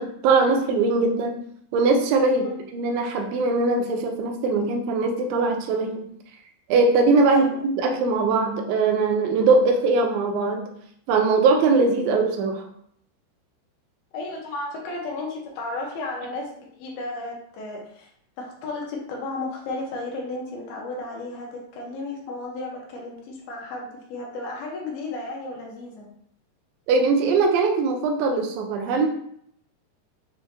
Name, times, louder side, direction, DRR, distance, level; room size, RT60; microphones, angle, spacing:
voice 1, 0.0-1.4 1.7-6.0 6.7-10.6 11.1-12.6 26.9-29.1, right 3 dB, 80° right, 3 dB, 2.2 m, -21 dB
voice 2, 7.3-7.6 14.1-18.1 18.4-26.1, left 2 dB, 75° left, -1 dB, 2.5 m, -34 dB
7.0 x 2.7 x 2.8 m, 0.68 s
omnidirectional pair, 4.7 m